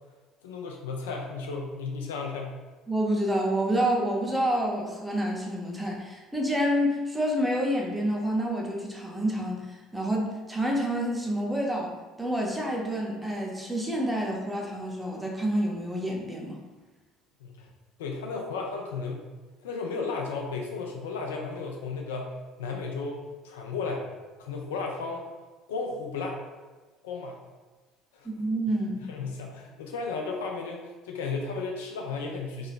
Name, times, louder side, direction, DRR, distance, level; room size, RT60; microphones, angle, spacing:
voice 1, 0.4-2.5 17.4-17.7 18.0-19.2 19.6-22.3 22.6-23.2 23.4-24.0 24.4-25.2 25.7-26.4 27.0-27.4 28.1-28.3 29.1-32.7, left 4 dB, 70° left, 1 dB, 0.4 m, -34 dB
voice 2, 2.9-11.9 12.2-16.6 28.2-29.0, equal, 10° right, -1 dB, 0.7 m, -28 dB
3.0 x 2.8 x 2.4 m, 1.3 s
figure-of-eight pair, 60°, 0 cm